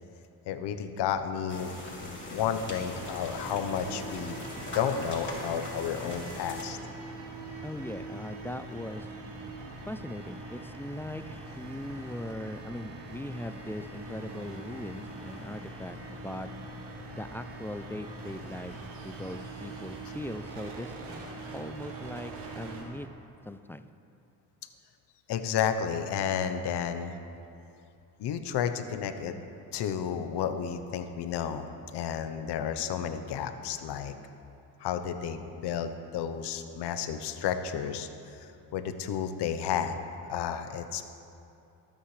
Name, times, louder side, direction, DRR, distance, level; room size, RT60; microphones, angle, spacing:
voice 1, 0.5-4.4 4.7-6.8 25.3-27.1 28.2-29.3 29.7-31.7 31.9-34.2 34.8-41.0, left 8 dB, 70° left, 8 dB, 1.0 m, -32 dB
sound 1, 1.5-6.6, left 1 dB, 25° left, 3.2 m, -41 dB
sound 2, 2.9-22.8, right 2 dB, 75° right, 2.6 m, -42 dB
voice 2, 7.6-9.1 9.9-16.5 17.2-18.8 19.0-21.2 21.5-23.1 23.5-23.9, left 1 dB, 5° left, 10 dB, 0.4 m, -40 dB
21.5 x 9.0 x 3.3 m, 2.7 s
cardioid pair, 85°, 42 cm